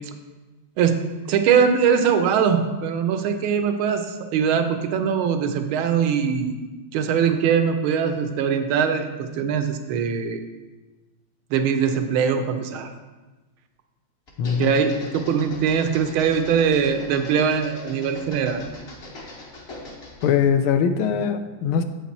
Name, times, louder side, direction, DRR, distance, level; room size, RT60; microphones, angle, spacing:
voice 1, 1.3-6.5 6.9-10.4 11.5-12.9 14.6-18.6, right 7 dB, 80° right, 7 dB, 1.5 m, -22 dB
sound 1, 14.3-20.4, left 2 dB, 40° left, 1.0 m, -41 dB
voice 2, 14.4-14.8 20.2-21.8, left 7 dB, 85° left, 9 dB, 1.4 m, -21 dB
7.9 x 5.9 x 4.1 m, 1.2 s
omnidirectional pair, 2.3 m